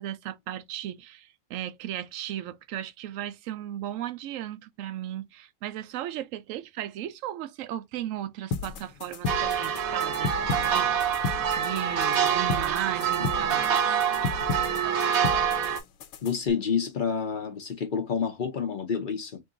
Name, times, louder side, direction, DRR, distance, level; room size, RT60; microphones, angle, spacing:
voice 1, 0.0-10.3 10.6-11.2 11.6-13.6 14.0-14.2, right 12 dB, 70° right, 0.9 m, -36 dB
sound 1, 8.5-16.5, left 5 dB, 80° left, 1.1 m, -34 dB
sound 2, 9.3-15.8, right 8 dB, 85° right, 1.4 m, -26 dB
voice 2, 16.2-19.4, left 6 dB, 45° left, 0.7 m, -29 dB
3.7 x 2.6 x 3.7 m
omnidirectional pair, 1.5 m